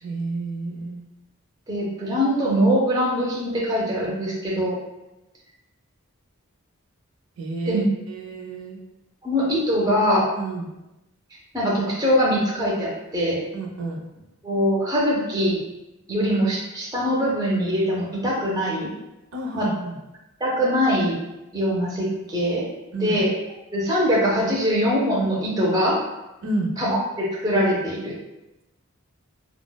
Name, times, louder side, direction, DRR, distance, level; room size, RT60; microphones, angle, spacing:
voice 1, 0.0-1.0 7.4-8.8 10.3-10.7 13.5-14.0 19.3-20.0 22.9-23.2 26.4-26.7, right 2 dB, 70° right, -1 dB, 0.5 m, -30 dB
voice 2, 1.7-4.8 7.7-7.8 9.2-10.3 11.5-13.4 14.4-15.6 16.1-18.9 19.5-19.7 20.4-21.2 21.5-22.7 23.0-23.3 23.7-26.0 26.8-28.1, equal, 15° right, -4 dB, 0.4 m, -22 dB
3.9 x 2.0 x 2.2 m, 0.98 s
head